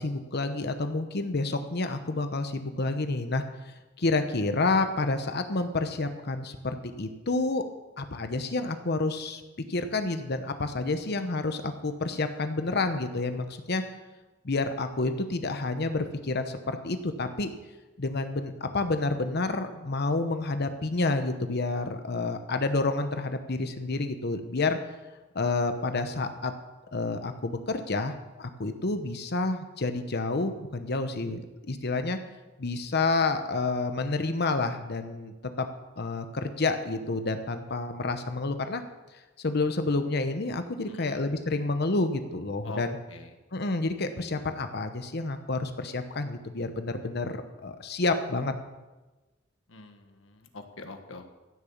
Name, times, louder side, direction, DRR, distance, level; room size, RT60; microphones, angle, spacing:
voice 1, 0.0-7.6 8.0-9.4 9.7-13.8 14.4-17.5 18.0-24.8 25.3-26.5 26.9-31.4 31.7-32.2 32.6-35.7 36.0-38.8 39.4-43.0 43.5-48.5, left 3 dB, 55° left, 8 dB, 1.0 m, -29 dB
voice 2, 40.9-41.2 42.6-42.8 43.1-43.3 49.7-51.3, left 3 dB, 80° left, 6 dB, 1.5 m, -44 dB
15.5 x 7.0 x 7.2 m, 1.1 s
head